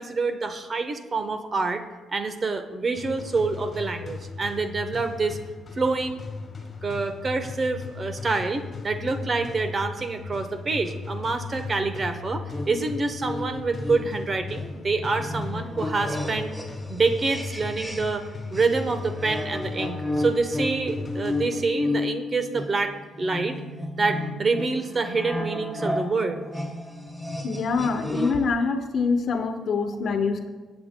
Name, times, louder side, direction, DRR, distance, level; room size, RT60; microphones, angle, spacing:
voice 1, 0.0-1.8 2.1-5.4 5.8-6.2 6.8-16.5 16.9-23.6 24.0-26.4, right 3 dB, 35° right, 8 dB, 0.9 m, -27 dB
sound 1, 3.0-21.9, left 4 dB, 40° left, 1.6 m, -37 dB
sound 2, 12.5-18.3 18.5-28.5, left 2 dB, 5° right, 1.1 m, -33 dB
voice 2, 27.4-30.5, left 4 dB, 60° left, 6 dB, 1.0 m, -25 dB
21.5 x 7.9 x 2.2 m, 1.3 s
cardioid pair, 90°, 0 cm